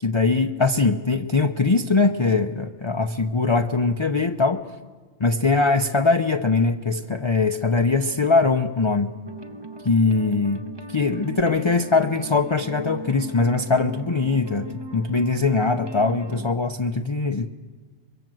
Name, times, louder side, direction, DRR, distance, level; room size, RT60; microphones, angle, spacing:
voice 1, 0.0-4.6 5.2-9.1 9.9-10.6 10.9-17.5, left 3 dB, 30° left, 6 dB, 0.6 m, -21 dB
sound 1, 9.2-16.5, right 2 dB, 25° right, 0.8 m, -38 dB
24.0 x 22.5 x 7.8 m, 1.5 s
omnidirectional pair, 1.3 m